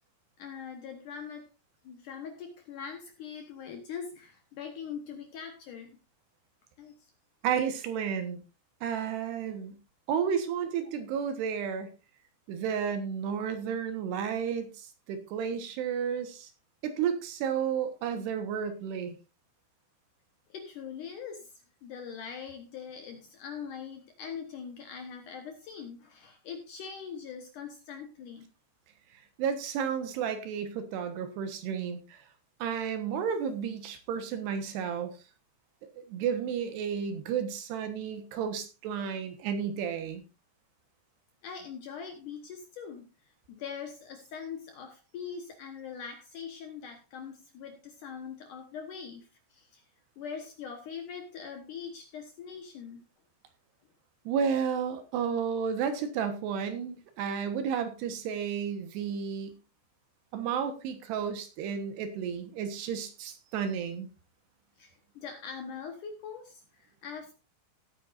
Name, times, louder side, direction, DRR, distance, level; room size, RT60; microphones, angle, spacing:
voice 1, 0.4-1.5 1.8-6.0 6.8-7.1 20.5-21.5 21.8-28.5 41.4-49.8 50.2-53.1 64.8-67.3, left 6 dB, 65° left, 4 dB, 2.2 m, -42 dB
voice 2, 7.4-8.4 8.8-9.8 10.1-11.9 12.5-16.5 16.8-19.2 29.4-32.2 32.6-35.1 35.8-40.2 54.3-59.5 60.3-64.1, right 7 dB, 75° right, 8 dB, 3.3 m, -32 dB
17.0 x 9.3 x 2.6 m, 0.29 s
omnidirectional pair, 5.0 m